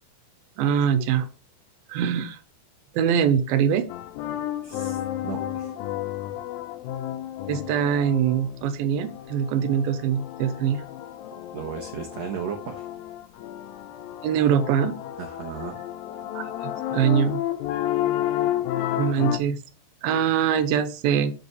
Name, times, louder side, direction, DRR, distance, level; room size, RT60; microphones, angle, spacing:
voice 1, 0.6-1.3 1.9-2.4 2.9-3.9 7.5-10.8 14.2-14.9 16.3-17.4 19.0-19.6 20.0-21.3, right 8 dB, 85° right, 9 dB, 2.6 m, -23 dB
sound 1, 3.9-19.4, left 12 dB, 80° left, 2.4 m, -31 dB
voice 2, 4.6-5.7 11.5-12.9 15.2-15.8, right 7 dB, 65° right, 1 dB, 1.8 m, -35 dB
7.9 x 6.9 x 3.2 m, 0.34 s
omnidirectional pair, 4.2 m